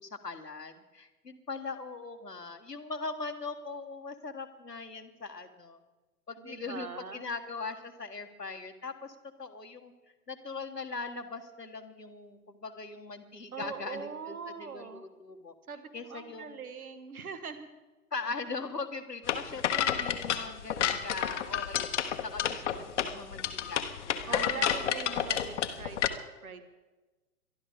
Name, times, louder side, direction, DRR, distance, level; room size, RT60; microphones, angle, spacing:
voice 1, 0.0-5.8 6.3-9.9 10.3-15.5 15.9-16.6 18.1-21.9 22.2-24.7, left 4 dB, 85° left, 8 dB, 1.5 m, -40 dB
voice 2, 6.4-7.3 13.5-15.0 15.7-17.7 24.3-26.7, right 6 dB, 65° right, 10 dB, 1.7 m, -42 dB
sound 1, 19.3-26.1, left 9 dB, 50° left, 1.0 m, -30 dB
23.0 x 12.0 x 3.6 m, 1.2 s
figure-of-eight pair, 115°, 47 cm